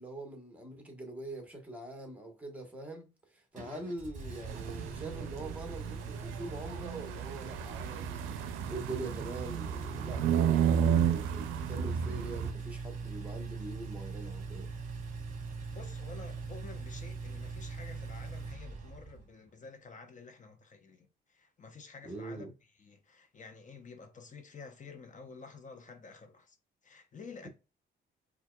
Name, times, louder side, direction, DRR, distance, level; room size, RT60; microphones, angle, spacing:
voice 1, 0.0-8.4 8.7-14.7 22.0-22.5, right 2 dB, 5° right, 1.2 m, -43 dB
Engine, 3.6-19.3, right 4 dB, 40° right, 1.2 m, -42 dB
sound 1, 4.5-12.5, right 8 dB, 90° right, 0.4 m, -32 dB
voice 2, 15.7-22.5 22.8-26.6 26.8-27.5, left 4 dB, 40° left, 0.8 m, -50 dB
4.4 x 2.4 x 2.3 m
cardioid pair, 90°, 20 cm